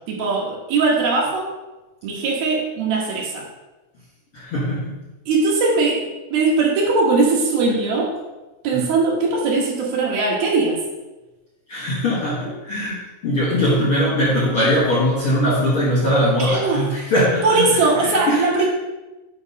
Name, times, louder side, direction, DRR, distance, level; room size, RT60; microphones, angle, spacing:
voice 1, 0.1-1.5 2.0-3.5 5.3-8.2 8.6-10.8 16.4-16.8 17.4-18.7, right 3 dB, 75° right, -3 dB, 3.0 m, -20 dB
voice 2, 4.3-4.9 11.7-18.5, equal, 50° left, -7 dB, 1.7 m, -21 dB
8.9 x 3.1 x 5.2 m, 1.1 s
omnidirectional pair, 4.5 m